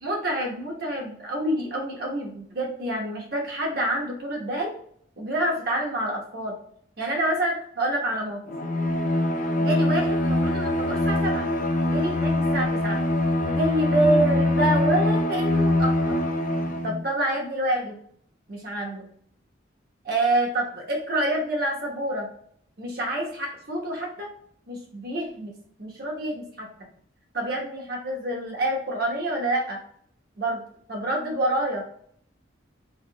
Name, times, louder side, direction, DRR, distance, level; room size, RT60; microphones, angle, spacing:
voice 1, 0.0-4.7 5.2-6.6 7.0-8.4 9.6-11.5 11.9-13.0 13.4-16.2 16.8-18.0 18.5-19.1 20.0-22.3 22.8-24.3 24.7-25.5 25.8-26.7 27.3-29.8 30.4-30.6 30.9-31.8, right 1 dB, 50° right, -1 dB, 1.1 m, -27 dB
Bowed string instrument, 8.5-17.0, left 1 dB, 40° left, 0.4 m, -23 dB
3.3 x 3.0 x 2.9 m, 0.62 s
head